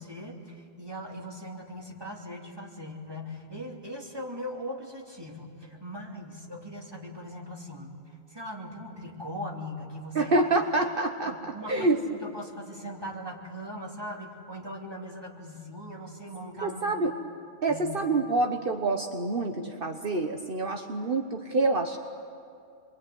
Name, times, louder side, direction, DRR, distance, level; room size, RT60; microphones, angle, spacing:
voice 1, 0.0-10.3 11.2-17.0 17.7-18.0, equal, 20° right, -1 dB, 3.2 m, -40 dB
voice 2, 10.1-12.0 16.6-17.1 17.6-22.0, right 2 dB, 55° right, 4 dB, 1.3 m, -27 dB
27.5 x 23.0 x 9.4 m, 2.4 s
omnidirectional pair, 1.1 m